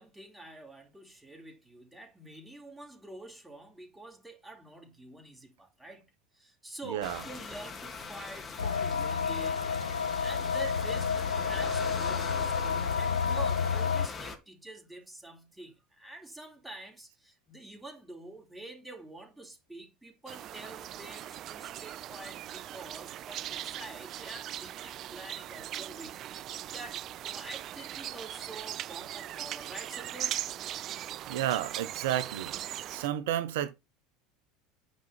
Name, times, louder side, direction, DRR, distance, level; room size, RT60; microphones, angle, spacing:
voice 1, 0.0-9.7 10.1-30.4, right 2 dB, 5° right, 3.9 m, -47 dB
voice 2, 6.9-7.2 31.3-32.5 32.9-33.7, right 12 dB, 65° right, 1.2 m, -31 dB
sound 1, 7.0-14.4, left 4 dB, 30° left, 3.2 m, -41 dB
sound 2, 8.6-14.1, left 6 dB, 85° left, 0.4 m, -30 dB
sound 3, 20.3-33.1, right 12 dB, 45° right, 0.5 m, -39 dB
9.3 x 5.6 x 5.7 m
figure-of-eight pair, 75°, 0 cm